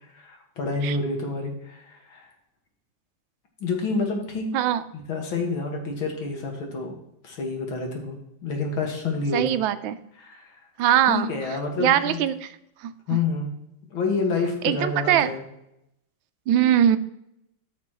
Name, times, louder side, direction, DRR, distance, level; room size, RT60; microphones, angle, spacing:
voice 1, 0.1-2.3 3.6-4.5 4.9-7.0 7.2-9.5 10.2-10.5 11.1-12.2 13.1-13.5 13.9-15.4, left 4 dB, 90° left, 1 dB, 2.6 m, -28 dB
voice 2, 9.3-10.0 10.8-11.3 11.8-12.5 12.8-13.2 14.6-15.3 16.5-17.0, right 10 dB, 85° right, 12 dB, 1.4 m, -21 dB
14.0 x 5.9 x 3.0 m, 0.80 s
omnidirectional pair, 2.2 m